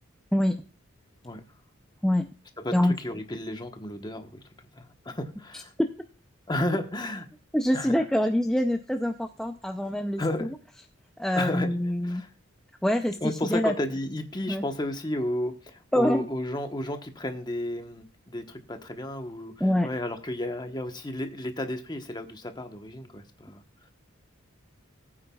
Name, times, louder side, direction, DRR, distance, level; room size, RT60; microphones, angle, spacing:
voice 1, 2.6-4.4 4.7-5.7 6.5-7.3 7.7-7.9 10.2-10.5 11.3-11.7 12.0-12.3 13.2-23.6, left 1 dB, 20° left, 6 dB, 1.1 m, -32 dB
voice 2, 7.5-10.2 11.2-12.2 12.8-13.7 14.5-14.6 15.9-16.3 19.6-19.9, left 1 dB, 5° left, 4 dB, 0.5 m, -25 dB
18.5 x 8.7 x 2.3 m, 0.35 s
head